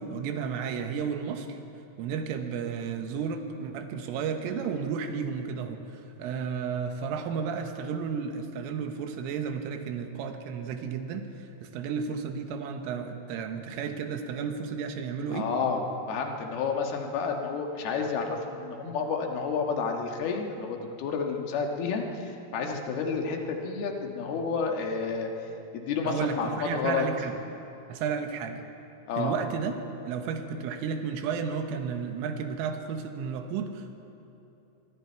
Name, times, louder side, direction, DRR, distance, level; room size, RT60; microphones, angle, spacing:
voice 1, 0.0-1.6 2.0-15.5 26.1-27.3 27.9-28.7 29.2-29.8 30.1-34.0, right 6 dB, 90° right, 5 dB, 3.8 m, -33 dB
voice 2, 15.3-15.8 16.1-27.1 29.1-29.3, left 5 dB, 60° left, 2 dB, 3.2 m, -30 dB
25.0 x 23.5 x 4.6 m, 2.8 s
omnidirectional pair, 5.6 m